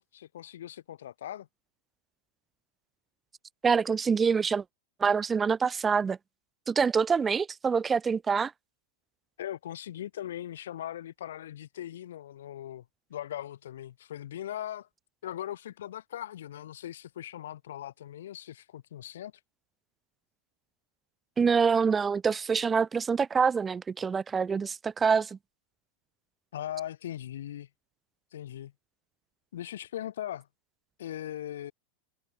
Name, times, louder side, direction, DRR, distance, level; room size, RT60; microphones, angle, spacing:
voice 1, 0.0-1.5 9.4-12.8 13.1-14.9 15.2-19.3 26.5-27.7 28.3-28.7 29.5-30.5 31.0-31.7, left 11 dB, 60° left, 2.5 m, -39 dB
voice 2, 3.6-4.6 5.0-6.2 6.7-8.5 21.4-25.4, right 5 dB, 15° right, 1.0 m, -26 dB
figure-of-eight pair, 90°, 0 cm